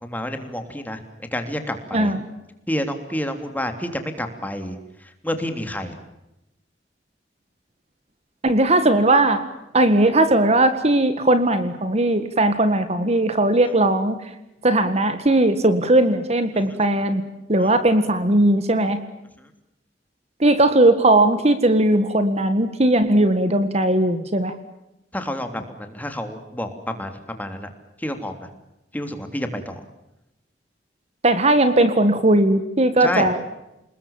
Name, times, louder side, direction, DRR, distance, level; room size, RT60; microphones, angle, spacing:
voice 1, 0.0-1.0 1.3-2.1 2.7-6.0 17.6-17.7 19.4-19.5 25.1-27.7 28.0-28.5 28.9-29.8 33.0-33.3, left 1 dB, 10° left, 7 dB, 3.1 m, -29 dB
voice 2, 8.4-9.5 9.7-14.3 14.6-17.2 17.5-19.0 20.4-24.5 31.2-33.4, right 1 dB, 35° right, 10 dB, 1.8 m, -18 dB
29.0 x 20.5 x 7.3 m, 0.89 s
head